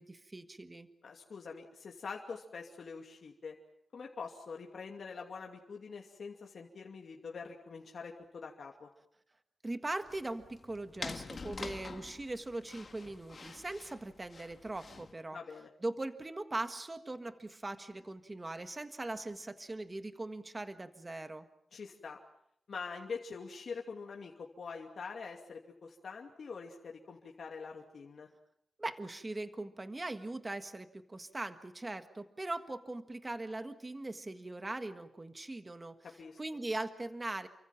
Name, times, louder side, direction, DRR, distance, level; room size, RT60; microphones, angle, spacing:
voice 1, 0.0-0.9 9.6-15.4 15.8-21.5 28.8-36.0 36.4-37.5, right 2 dB, 20° right, 9 dB, 1.6 m, -40 dB
voice 2, 1.0-3.5 3.9-8.9 15.3-15.7 21.7-22.2 22.7-28.3 36.2-36.4, left 5 dB, 55° left, 1 dB, 2.6 m, -45 dB
sound 1, 10.1-15.1, left 4 dB, 35° left, 1.8 m, -46 dB
29.5 x 24.5 x 6.0 m, 0.73 s
wide cardioid pair, 180°, 0 cm